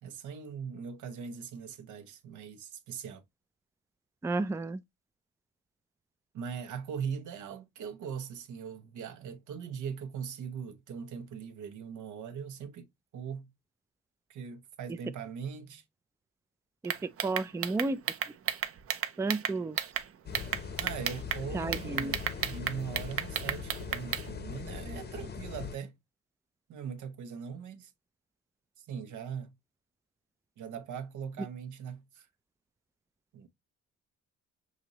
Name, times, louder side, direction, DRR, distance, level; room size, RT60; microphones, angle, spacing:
voice 1, 0.0-3.2 6.3-12.9 13.1-13.5 14.3-15.8 20.8-25.9 26.7-27.9 28.8-29.5 30.6-32.3 33.3-33.5, right 7 dB, 80° right, 1.0 m, -40 dB
voice 2, 4.2-4.8 16.8-18.0 19.2-19.8 21.5-22.1, right 3 dB, 10° right, 0.4 m, -32 dB
sound 1, 16.8-20.0 20.3-21.4 21.7-24.3, right 8 dB, 50° right, 0.7 m, -32 dB
sound 2, 20.3-25.8, left 6 dB, 35° left, 0.8 m, -41 dB
6.1 x 2.8 x 2.9 m
cardioid pair, 90°, 30 cm